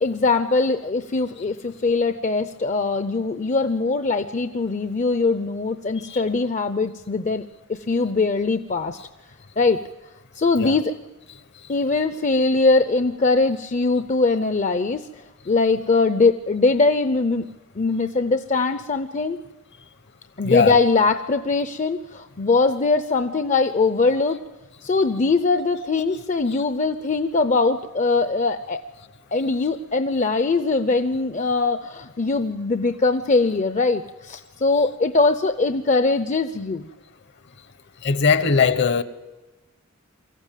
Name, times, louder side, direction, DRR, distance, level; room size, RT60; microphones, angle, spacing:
voice 1, 0.0-7.4 7.7-9.0 9.6-9.8 10.4-10.9 11.7-15.1 15.5-17.5 17.8-19.4 20.4-24.4 24.8-28.8 29.3-36.9, left 3 dB, 35° left, 0.6 m, -21 dB
voice 2, 20.4-20.8 38.0-39.0, left 5 dB, 55° left, 1.0 m, -19 dB
23.5 x 14.5 x 9.1 m
head